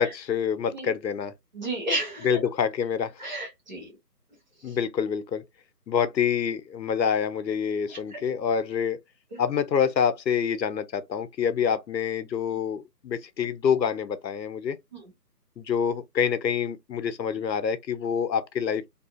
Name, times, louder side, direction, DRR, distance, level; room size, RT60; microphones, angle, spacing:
voice 1, 0.0-1.3 2.2-3.3 4.6-5.4 5.9-9.0 9.4-14.8 15.6-18.9, left 7 dB, 85° left, 0.6 m, -26 dB
voice 2, 1.5-2.5 3.2-3.9 4.7-4.8 7.9-8.2 9.3-9.4 14.9-15.1, right 1 dB, 25° right, 1.0 m, -33 dB
2.6 x 2.3 x 2.3 m
figure-of-eight pair, 155°, 50 cm